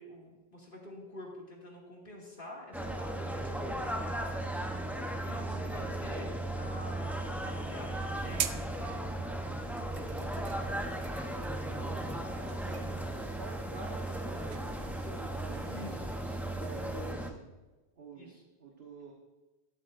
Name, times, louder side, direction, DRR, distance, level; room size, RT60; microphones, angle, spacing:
voice 1, 0.0-4.1 5.2-9.0 15.7-16.4 18.1-18.4, left 1 dB, 55° left, -2 dB, 2.5 m, -48 dB
sound 1, 2.7-17.3, right 1 dB, ahead, 0.7 m, -36 dB
sound 2, 8.2-17.1, right 9 dB, 85° right, 0.9 m, -45 dB
voice 2, 9.9-10.9 11.7-16.1 16.6-17.5 18.0-18.3 18.6-19.1, right 3 dB, 70° right, 0 dB, 1.4 m, -48 dB
12.5 x 12.0 x 2.6 m, 1.2 s
omnidirectional pair, 1.1 m